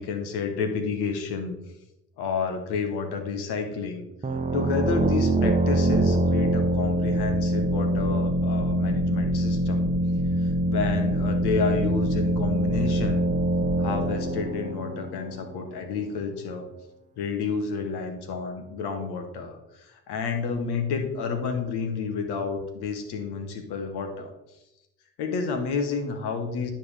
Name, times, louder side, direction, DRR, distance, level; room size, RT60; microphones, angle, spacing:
voice 1, 0.0-1.6 2.2-4.0 4.5-9.9 10.7-13.3 13.8-16.7 17.2-24.3 25.2-26.7, left 5 dB, 70° left, 6 dB, 1.2 m, -30 dB
sound 1, 4.2-15.7, right 1 dB, 20° right, 0.8 m, -24 dB
9.3 x 5.3 x 3.4 m, 0.93 s
hypercardioid pair, 45°, 40 cm